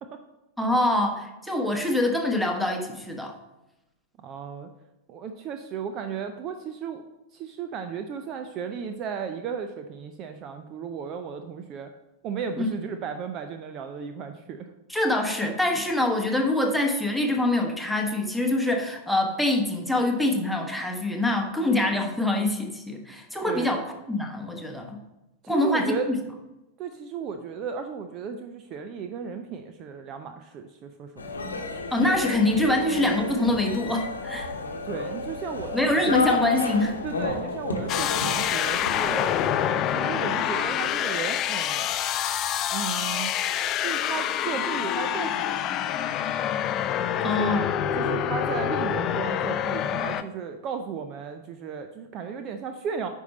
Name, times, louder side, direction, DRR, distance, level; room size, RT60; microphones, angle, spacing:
voice 1, 0.6-3.3 12.6-12.7 14.9-25.0 25.5-26.2 31.9-34.5 35.7-36.9 47.2-47.7, left 2 dB, ahead, 1 dB, 1.3 m, -25 dB
voice 2, 4.2-4.7 5.1-7.0 7.3-11.9 12.2-14.7 23.5-23.7 25.4-26.1 26.8-31.2 34.8-36.2 37.0-39.3 39.7-41.9 42.7-43.3 43.8-45.7 47.2-47.6 47.9-53.1, right 6 dB, 35° right, 7 dB, 0.6 m, -34 dB
sound 1, 31.2-39.4, left 2 dB, 75° left, 1.0 m, -31 dB
sound 2, 37.9-50.2, left 10 dB, 35° left, 0.4 m, -26 dB
9.2 x 5.5 x 4.2 m, 0.98 s
figure-of-eight pair, 90°, 0 cm